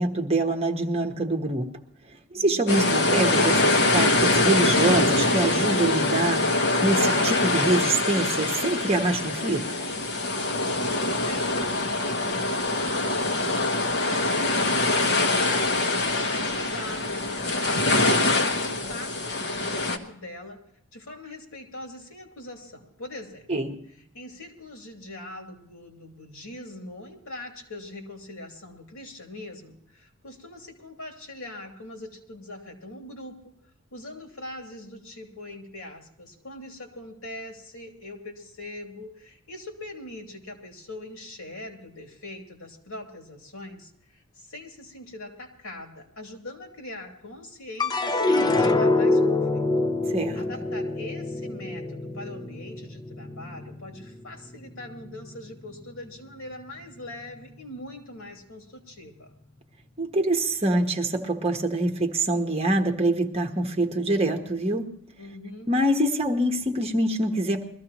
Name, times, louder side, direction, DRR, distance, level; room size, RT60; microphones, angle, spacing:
voice 1, 0.0-1.7 2.3-9.7 23.5-23.8 50.1-50.4 60.0-64.9 65.7-67.6, right 1 dB, 30° right, 2 dB, 1.2 m, -25 dB
voice 2, 2.3-2.7 10.8-15.3 15.7-20.6 20.9-23.5 24.1-33.5 33.9-49.6 50.3-59.3 65.2-65.7, left 1 dB, 80° left, 2 dB, 2.8 m, -42 dB
sound 1, 2.7-20.0, left 2 dB, 50° left, 1.2 m, -24 dB
sound 2, 47.8-54.2 54.7-55.4, left 2 dB, 20° left, 0.5 m, -25 dB
22.0 x 14.5 x 3.0 m, 0.70 s
head